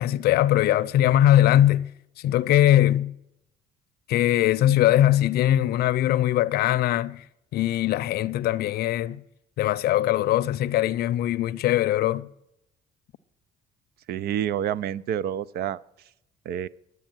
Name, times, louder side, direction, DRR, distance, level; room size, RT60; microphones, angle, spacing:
voice 1, 0.0-1.9 2.2-3.1 4.1-7.2 7.5-9.2 9.6-12.3, left 13 dB, 70° left, 0.5 m, -21 dB
voice 2, 14.1-15.8 16.5-16.7, right 10 dB, 70° right, 0.5 m, -28 dB
10.5 x 8.2 x 8.9 m
cardioid pair, 110°, 17 cm